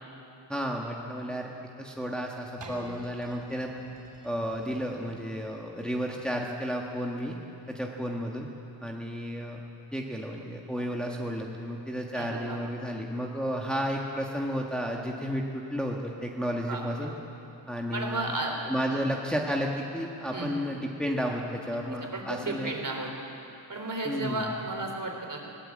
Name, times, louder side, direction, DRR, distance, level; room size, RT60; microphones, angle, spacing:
voice 1, 0.5-1.5 1.8-3.7 4.2-7.3 7.7-8.5 8.8-9.6 9.9-17.1 17.7-18.3 18.7-22.7 24.0-24.4, equal, ahead, -1 dB, 1.6 m, -32 dB
sound 1, 2.6-8.3 8.9-9.0, right 2 dB, 65° right, 4.0 m, -51 dB
voice 2, 12.1-12.6 16.7-17.1 17.9-18.6 18.9-19.0 20.3-20.5 21.6-21.8 22.0-23.1 23.7-25.5, right 2 dB, 45° right, 2 dB, 3.5 m, -34 dB
21.5 x 17.5 x 8.6 m, 2.9 s
wide cardioid pair, 120°, 45 cm